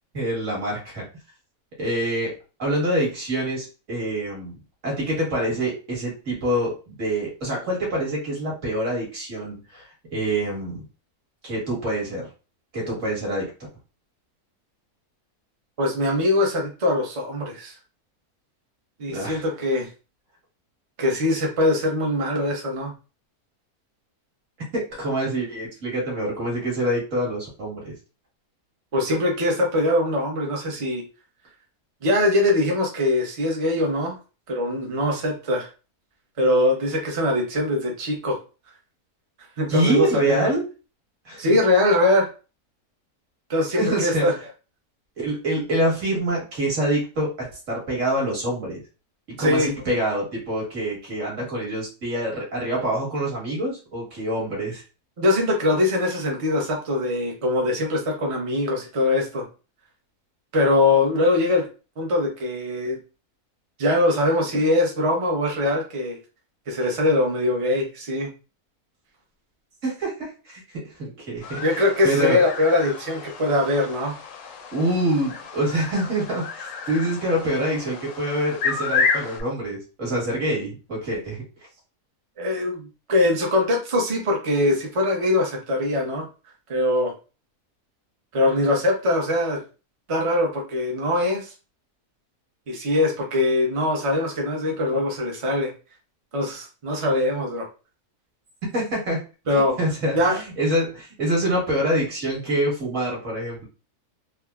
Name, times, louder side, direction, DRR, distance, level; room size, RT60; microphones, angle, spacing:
voice 1, 0.1-1.1 1.8-4.6 4.8-10.8 11.4-12.3 12.7-13.5 19.1-19.4 24.7-27.9 39.7-40.6 41.2-41.6 43.8-44.3 45.2-48.8 49.4-54.8 69.8-71.6 72.0-72.4 74.7-81.4 98.7-99.2 99.5-103.6, right 1 dB, 55° right, -4 dB, 1.6 m, -26 dB
voice 2, 15.8-17.7 19.0-19.9 21.0-22.9 28.9-31.0 32.0-34.2 34.5-35.7 36.4-38.4 39.6-40.5 41.4-42.3 43.5-44.3 49.4-49.7 55.2-59.4 60.5-61.7 62.0-63.0 63.8-66.2 66.7-68.3 71.6-74.1 82.4-86.3 86.7-87.1 88.3-89.6 90.1-91.5 92.7-95.7 96.3-97.7 99.5-99.8 100.1-100.4, left 2 dB, 35° right, 0 dB, 0.5 m, -22 dB
sound 1, 71.4-79.4, left 5 dB, 75° left, 1.0 m, -31 dB
3.4 x 2.1 x 2.3 m, 0.33 s
omnidirectional pair, 1.6 m